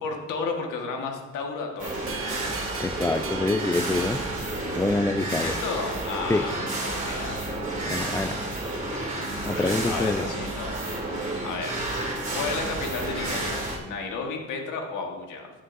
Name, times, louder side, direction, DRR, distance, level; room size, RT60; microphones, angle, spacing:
voice 1, 0.0-2.0 5.3-7.4 9.4-10.7 11.4-11.8 12.3-15.5, left 4 dB, 90° left, 2 dB, 1.6 m, -33 dB
sound 1, 1.8-13.8, right 2 dB, 25° right, 2.9 m, -31 dB
sound 2, 2.1-5.3, right 7 dB, 45° right, 0.9 m, -40 dB
voice 2, 2.8-4.2 4.7-5.5 6.3-6.5 7.9-8.4 9.4-10.3, left 2 dB, 10° left, 13 dB, 0.3 m, -26 dB
14.0 x 7.8 x 2.6 m, 1.2 s
cardioid pair, 90°, 30 cm